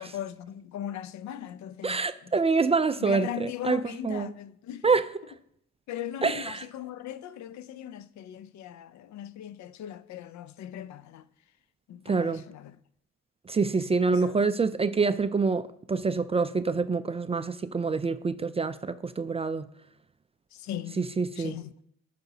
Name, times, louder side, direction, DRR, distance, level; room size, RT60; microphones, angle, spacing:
voice 1, 0.0-2.3 3.0-4.9 5.9-11.3 11.9-12.8 14.1-14.4 20.5-21.0 21.4-21.7, left 11 dB, 70° left, 0.5 m, -39 dB
voice 2, 1.8-4.3 4.8-5.1 6.2-6.6 12.1-12.4 13.5-19.7 21.0-21.5, right 4 dB, 20° right, 0.3 m, -26 dB
14.5 x 5.9 x 2.7 m
cardioid pair, 90°, 30 cm